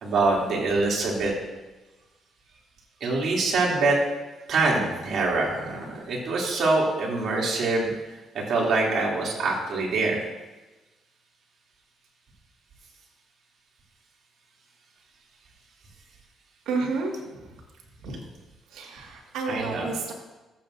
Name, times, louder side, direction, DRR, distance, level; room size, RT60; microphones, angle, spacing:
voice 1, 0.0-1.3 3.0-4.0 4.5-7.9 8.3-10.2 19.5-19.9, right 3 dB, 65° right, -3 dB, 2.9 m, -24 dB
voice 2, 16.7-17.6 18.0-18.3 18.7-20.1, right 4 dB, 90° right, 0 dB, 1.9 m, -31 dB
14.5 x 8.3 x 2.6 m, 1.1 s
cardioid pair, 90°, 0 cm